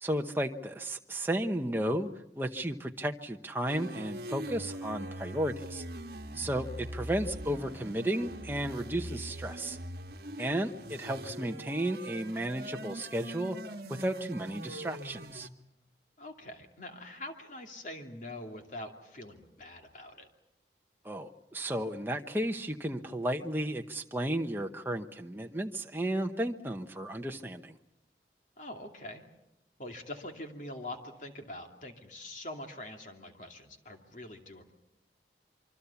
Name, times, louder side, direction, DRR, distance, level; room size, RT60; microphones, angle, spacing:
voice 1, 0.0-2.1 2.4-5.8 6.3-9.8 10.4-13.6 13.9-15.5 21.0-27.8, right 1 dB, 10° right, 4 dB, 0.9 m, -33 dB
sound 1, 3.6-15.5, right 1 dB, 60° right, 1.4 m, -42 dB
voice 2, 16.2-20.3 28.6-29.2 29.8-34.7, left 1 dB, 45° left, 3 dB, 2.6 m, -44 dB
26.5 x 24.5 x 7.1 m, 0.87 s
head